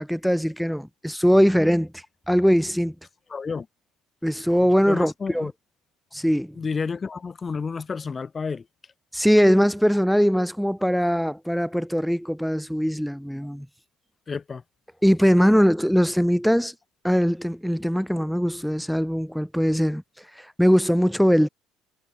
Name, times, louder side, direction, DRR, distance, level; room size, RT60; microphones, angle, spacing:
voice 1, 0.0-2.9 4.2-5.5 6.1-6.6 9.1-13.7 15.0-16.7 17.0-20.0 20.4-21.5, equal, ahead, 1.1 m, -21 dB
voice 2, 3.3-3.7 4.9-5.5 6.5-8.7 14.3-14.6, left 5 dB, 30° left, 4.4 m, -30 dB
supercardioid pair, 80°, 0 cm